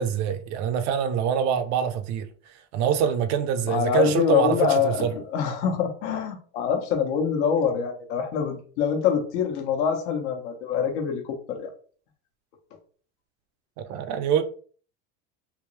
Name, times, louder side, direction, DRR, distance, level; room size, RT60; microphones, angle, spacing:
voice 1, 0.0-2.3 2.7-5.1 13.8-14.4, right 8 dB, 50° right, 0.6 m, -25 dB
voice 2, 3.7-11.7, left 7 dB, 75° left, 1.1 m, -25 dB
3.6 x 2.6 x 3.1 m
supercardioid pair, 125°, 35 cm